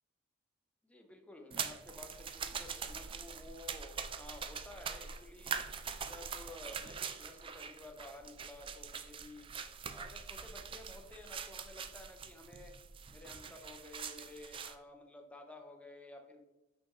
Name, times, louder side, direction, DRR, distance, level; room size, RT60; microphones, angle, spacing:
voice 1, 0.8-5.5 6.0-9.5 9.9-12.8 13.1-16.4, left 2 dB, 5° left, 3 dB, 0.7 m, -53 dB
sound 1, 1.5-14.7, right 6 dB, 25° right, 0.3 m, -43 dB
5.7 x 5.7 x 3.1 m, 0.99 s
head